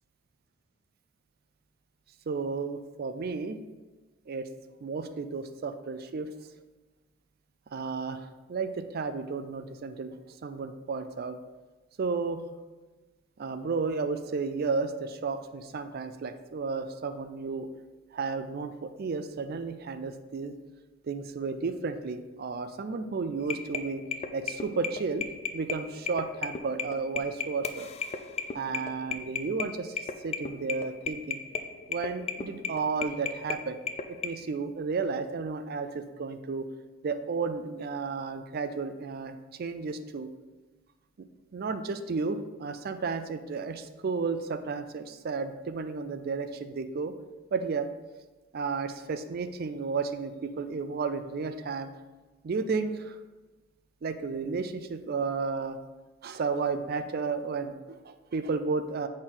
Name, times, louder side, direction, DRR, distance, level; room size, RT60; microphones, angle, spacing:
voice 1, 2.3-3.6 4.3-4.5 4.8-6.3 7.7-10.2 10.4-11.4 12.0-12.4 13.4-17.7 18.1-20.5 21.1-24.0 24.3-25.3 25.5-27.9 28.5-31.4 31.9-33.8 34.2-36.7 37.0-40.3 41.5-47.1 47.5-47.9 48.5-51.9 52.4-53.1 54.0-55.8 56.2-59.1, right 4 dB, 50° right, 10 dB, 0.4 m, -33 dB
sound 1, 23.4-34.3, left 5 dB, 30° left, 0.4 m, -35 dB
7.7 x 4.2 x 3.8 m, 1.2 s
head